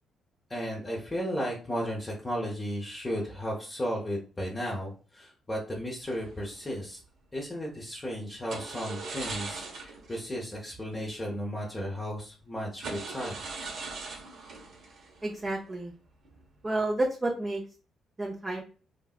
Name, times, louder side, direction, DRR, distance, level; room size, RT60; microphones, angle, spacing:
voice 1, 0.5-7.0 7.3-13.4, equal, 20° left, -3 dB, 0.8 m, -34 dB
sound 1, 6.0-6.8 8.5-10.3 10.5-10.7 11.1-11.2 11.9-12.0 12.7-15.9 16.2-16.6, right 3 dB, 70° right, 1.1 m, -40 dB
voice 2, 15.2-15.9 16.6-17.6 18.2-18.6, right 2 dB, 25° right, -1 dB, 0.6 m, -30 dB
3.2 x 2.6 x 2.4 m, 0.37 s
cardioid pair, 90°, 0 cm